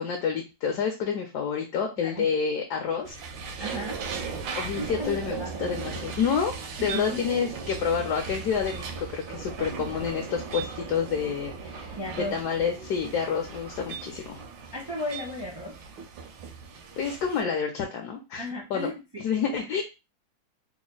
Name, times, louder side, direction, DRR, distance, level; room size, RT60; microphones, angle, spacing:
voice 1, 0.0-3.1 4.5-6.5 6.8-12.0 12.3-14.4 17.0-18.4 18.7-18.9 19.2-19.8, left 6 dB, 70° left, 1 dB, 1.1 m, -28 dB
sound 1, 3.0-17.4, right 5 dB, 90° right, 1.4 m, -37 dB
voice 2, 3.6-4.1 4.8-5.7 6.8-7.2 12.0-12.4 14.7-15.7 18.4-19.2, left 1 dB, 25° right, -3 dB, 0.5 m, -35 dB
3.5 x 2.1 x 3.8 m, 0.26 s
omnidirectional pair, 2.0 m